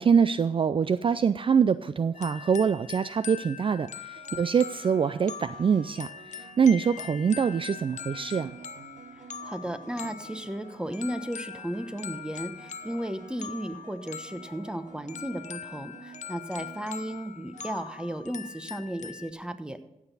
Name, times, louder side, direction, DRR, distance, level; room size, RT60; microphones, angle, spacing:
voice 1, 0.0-8.6, right 6 dB, 45° right, 14 dB, 0.4 m, -24 dB
sound 1, 2.1-19.3, left 8 dB, 70° left, 0.6 m, -42 dB
sound 2, 2.7-2.9 4.1-19.0, right 6 dB, 80° right, 1.2 m, -51 dB
voice 2, 9.4-19.8, right 1 dB, 5° right, 9 dB, 1.1 m, -35 dB
15.0 x 8.3 x 4.1 m, 0.86 s
cardioid pair, 70°, 13 cm